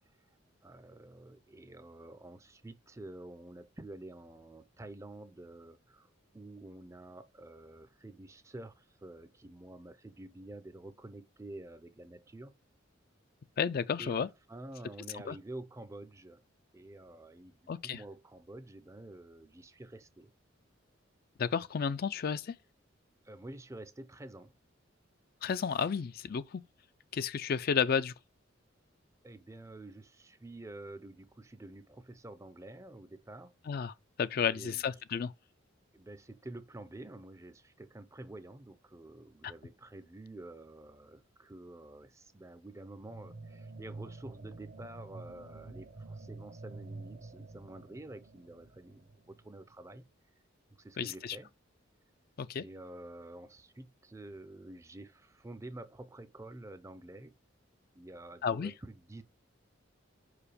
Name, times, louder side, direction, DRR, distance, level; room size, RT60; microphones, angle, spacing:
voice 1, 0.6-12.5 14.0-16.4 16.7-20.3 23.2-24.5 29.2-33.5 34.5-34.9 35.9-50.0 50.8-51.5 52.6-57.3 57.9-59.2, right 2 dB, 15° right, 0.5 m, -49 dB
voice 2, 13.6-14.3 15.3-15.4 17.7-18.0 21.4-22.5 25.4-26.6 27.1-28.1 33.7-33.9 34.2-35.3 51.0-51.4 52.4-52.6 58.4-58.7, left 6 dB, 50° left, 0.4 m, -32 dB
sound 1, 43.0-49.7, right 3 dB, 50° right, 0.8 m, -48 dB
5.2 x 4.9 x 4.9 m
head